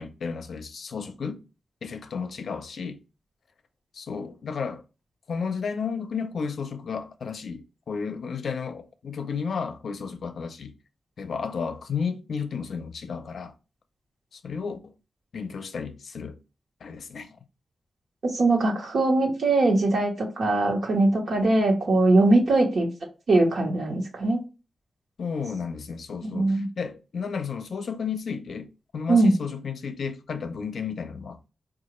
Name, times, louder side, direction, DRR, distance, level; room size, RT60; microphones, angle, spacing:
voice 1, 0.0-1.4 1.8-3.0 3.9-4.8 5.3-10.7 11.2-13.5 14.3-14.9 15.3-16.4 16.8-17.3 25.2-31.5, left 6 dB, 70° left, 0.5 m, -33 dB
voice 2, 18.3-22.9 23.3-24.4 26.2-26.7 29.1-29.3, right 2 dB, 70° right, 1.0 m, -21 dB
4.7 x 2.4 x 3.0 m
wide cardioid pair, 160°, 0 cm